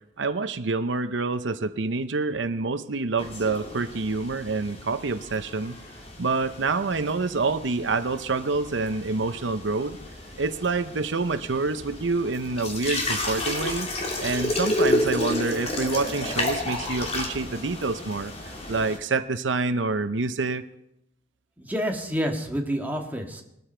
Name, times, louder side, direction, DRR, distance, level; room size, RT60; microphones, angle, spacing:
voice 1, 0.2-5.8 6.2-10.0 10.4-13.9 14.2-18.3 18.7-20.6, right 3 dB, 85° right, 11 dB, 0.8 m, -27 dB
sound 1, 3.2-19.0, left 1 dB, 35° left, 3.1 m, -31 dB
voice 2, 21.6-23.4, equal, 10° right, 1 dB, 1.8 m, -28 dB
20.5 x 13.0 x 4.5 m, 0.80 s
head